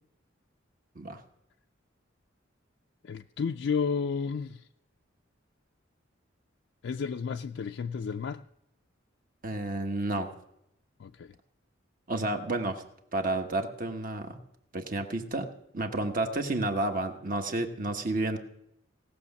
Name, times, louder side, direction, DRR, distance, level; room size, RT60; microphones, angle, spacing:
voice 1, 3.0-4.6 6.8-8.4 11.0-11.3, left 6 dB, 65° left, 0.4 m, -32 dB
voice 2, 9.4-10.3 12.1-12.8 13.1-14.4 14.7-15.5 15.7-18.4, right 2 dB, 45° right, 1.2 m, -31 dB
17.5 x 6.5 x 7.1 m
head